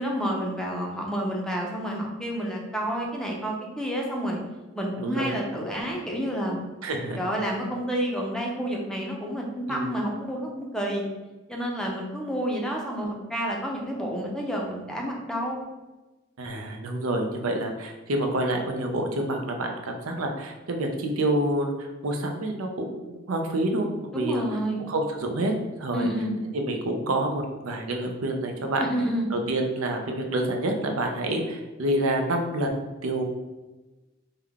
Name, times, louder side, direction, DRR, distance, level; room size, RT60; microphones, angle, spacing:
voice 1, 0.0-4.4 4.7-6.6 7.2-11.1 11.5-15.6 24.1-24.9 25.9-26.3 28.8-29.3, equal, 5° left, -1 dB, 0.5 m, -29 dB
voice 2, 5.0-5.4 6.8-7.2 9.7-9.9 16.4-24.6 24.9-25.5 25.8-26.1 26.5-28.9 29.3-32.8 33.0-33.2, right 1 dB, 85° right, 3 dB, 0.5 m, -28 dB
3.5 x 2.2 x 3.5 m, 1.1 s
head